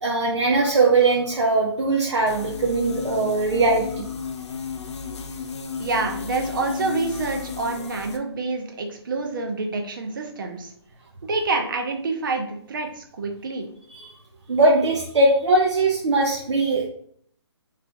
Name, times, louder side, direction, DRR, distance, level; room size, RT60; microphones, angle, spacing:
voice 1, 0.0-4.0 13.9-14.1 14.5-16.9, right 2 dB, 85° right, -2 dB, 0.8 m, -20 dB
sound 1, 2.3-8.2, left 6 dB, 85° left, 0.7 m, -33 dB
voice 2, 5.8-10.7 11.2-13.7, right 3 dB, 50° right, 3 dB, 0.6 m, -27 dB
3.8 x 3.3 x 3.4 m, 0.65 s
hypercardioid pair, 175°, 14 cm